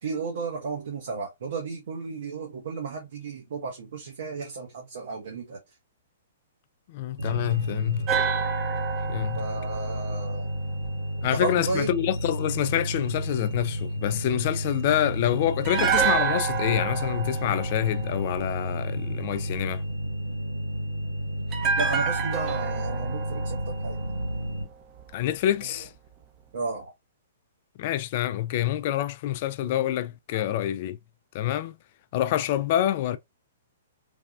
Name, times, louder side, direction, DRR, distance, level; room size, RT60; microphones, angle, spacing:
voice 1, 0.0-5.6 9.4-10.5 11.2-11.9 18.9-19.2 21.8-24.0 25.6-25.9 26.5-26.9 29.6-29.8 30.3-30.5, right 4 dB, 60° right, 0.8 m, -34 dB
voice 2, 6.9-8.1 9.1-9.4 11.2-19.8 25.1-25.9 27.8-31.0 31.3-31.8 32.1-33.2, left 12 dB, 45° left, 0.3 m, -27 dB
sound 1, 7.2-24.6, equal, 80° right, 1.7 m, -32 dB
sound 2, 8.1-11.2 15.6-18.9 21.5-24.7 25.0-25.1, right 6 dB, 30° right, 0.6 m, -29 dB
3.3 x 2.3 x 2.3 m
figure-of-eight pair, 115°, 0 cm